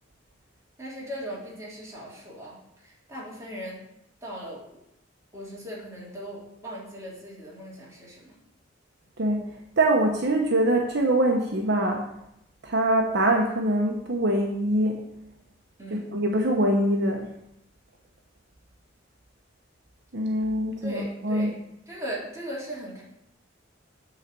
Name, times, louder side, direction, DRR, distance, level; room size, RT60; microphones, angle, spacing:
voice 1, 0.8-3.9 4.2-4.6 5.3-8.4 15.8-16.1 20.8-23.0, equal, 15° right, -6 dB, 3.1 m, -38 dB
voice 2, 9.8-12.0 12.6-15.0 15.9-17.3 20.1-21.5, right 1 dB, 60° right, 1 dB, 1.0 m, -23 dB
8.9 x 4.1 x 6.8 m, 0.81 s
head